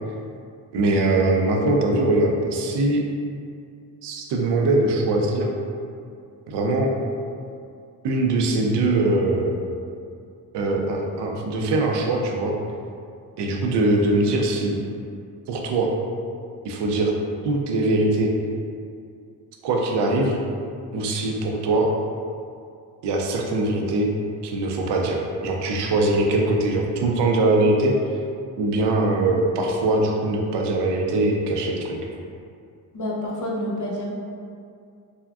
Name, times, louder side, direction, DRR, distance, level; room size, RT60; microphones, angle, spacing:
voice 1, 0.7-3.1 4.0-5.5 6.5-6.9 8.0-9.5 10.5-12.6 13.4-14.8 15.5-15.9 16.6-17.1 17.4-18.3 19.6-20.4 20.9-21.9 23.0-24.1 24.4-28.0 28.6-32.0, right 2 dB, 80° right, 1 dB, 0.5 m, -22 dB
voice 2, 32.9-34.1, left 1 dB, 50° left, -4 dB, 0.7 m, -28 dB
3.4 x 2.1 x 2.3 m, 2.4 s
cardioid pair, 75°, 41 cm